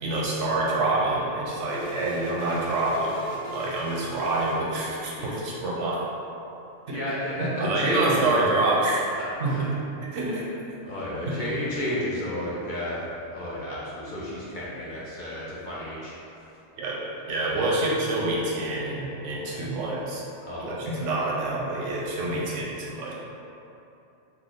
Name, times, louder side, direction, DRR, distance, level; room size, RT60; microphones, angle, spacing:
voice 1, 0.0-3.1 3.5-6.1 6.9-7.0 7.4-9.0 9.4-9.7 10.0-10.4 11.3-11.4 16.8-17.0 17.3-20.2 20.6-23.1, right 2 dB, 85° right, -4 dB, 1.0 m, -27 dB
sound 1, 1.7-5.3, equal, 80° left, 0.9 m, -39 dB
voice 2, 6.9-8.5 9.2-9.7 10.8-16.6 17.5-17.6 20.4-21.3, left 1 dB, 55° left, -8 dB, 0.6 m, -32 dB
3.1 x 2.3 x 3.6 m, 2.8 s
omnidirectional pair, 1.2 m